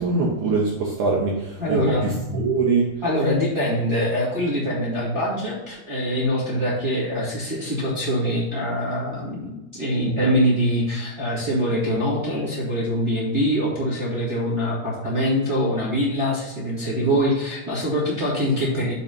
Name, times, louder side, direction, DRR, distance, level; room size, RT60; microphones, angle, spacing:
voice 1, 0.0-2.9, right 4 dB, 70° right, -3 dB, 1.8 m, -23 dB
voice 2, 1.6-2.1 3.0-18.9, equal, 15° right, -8 dB, 1.0 m, -24 dB
7.2 x 4.0 x 5.9 m, 1.0 s
omnidirectional pair, 4.8 m